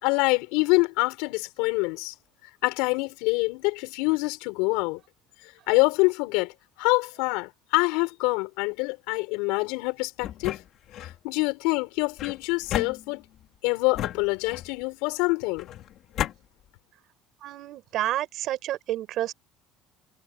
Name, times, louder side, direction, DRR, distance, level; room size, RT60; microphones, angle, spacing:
voice 1, 0.0-2.1 2.6-5.0 5.7-6.5 6.8-10.6 11.0-13.2 13.6-15.7, left 27 dB, 80° left, 6.3 m, -25 dB
sound 1, 10.2-11.2 12.2-13.4 13.9-14.8 15.6-16.4, left 12 dB, 45° left, 3.0 m, -33 dB
voice 2, 17.4-19.3, right 13 dB, 45° right, 5.7 m, -30 dB
cardioid pair, 170°, 0 cm